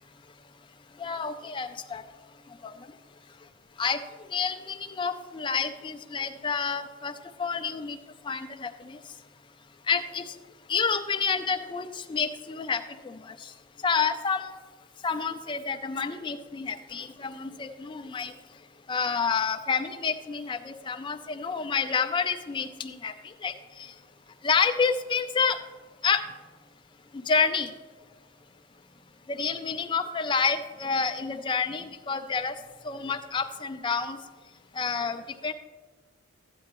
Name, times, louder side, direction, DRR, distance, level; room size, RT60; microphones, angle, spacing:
voice 1, 1.0-2.0 2.6-2.7 3.8-4.0 4.3-7.1 7.4-8.0 8.2-9.0 9.9-10.4 10.7-13.5 13.8-14.5 15.0-18.3 18.9-23.9 24.4-25.6 26.0-26.2 27.1-27.7 29.3-32.5 32.8-34.2 34.7-35.5, left 5 dB, 20° left, 6 dB, 0.3 m, -29 dB
12.5 x 8.4 x 3.0 m, 1.4 s
head